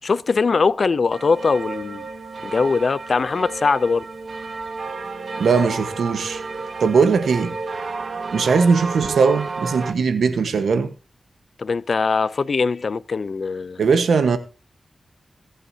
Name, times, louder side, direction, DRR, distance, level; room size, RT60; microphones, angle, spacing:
voice 1, 0.0-2.1 2.4-4.1 11.6-13.8, left 4 dB, 65° left, 0.5 m, -21 dB
sound 1, 1.1-9.9, right 4 dB, 75° right, 1.3 m, -31 dB
voice 2, 5.4-6.4 6.8-7.6 8.3-10.9 13.8-14.4, right 5 dB, 90° right, 1.2 m, -19 dB
21.0 x 8.0 x 2.8 m
cardioid pair, 50°, 0 cm